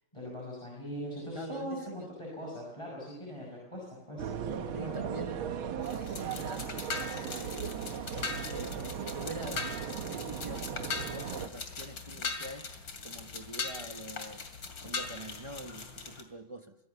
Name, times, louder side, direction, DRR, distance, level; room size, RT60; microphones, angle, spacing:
voice 1, 0.1-5.1, equal, 15° left, -3 dB, 6.1 m, -41 dB
voice 2, 1.3-2.1 4.7-7.9 8.5-14.5 14.8-16.8, right 1 dB, 50° right, 6 dB, 0.3 m, -45 dB
sound 1, 4.2-11.5, right 8 dB, 85° right, 1.9 m, -37 dB
sound 2, 5.8-16.2, left 4 dB, 70° left, 3.2 m, -40 dB
24.0 x 17.0 x 6.9 m, 0.88 s
omnidirectional pair, 2.2 m